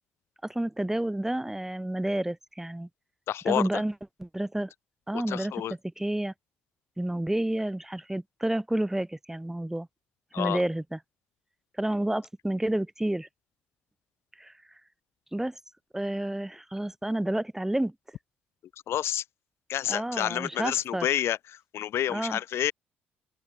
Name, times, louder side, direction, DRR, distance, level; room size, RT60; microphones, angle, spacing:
voice 1, 0.4-2.9 3.5-3.9 4.2-4.7 5.1-5.5 6.0-6.3 7.0-9.9 10.4-11.0 11.8-13.3 14.4-14.5 15.3-15.6 15.9-17.9 19.9-21.1 22.1-22.4, right 1 dB, 5° right, 0.5 m, -30 dB
voice 2, 3.3-3.8 5.1-5.7 10.3-10.6 18.9-19.2 19.7-22.7, left 11 dB, 55° left, 0.3 m, -29 dB
open air
hypercardioid pair, 50°, 5 cm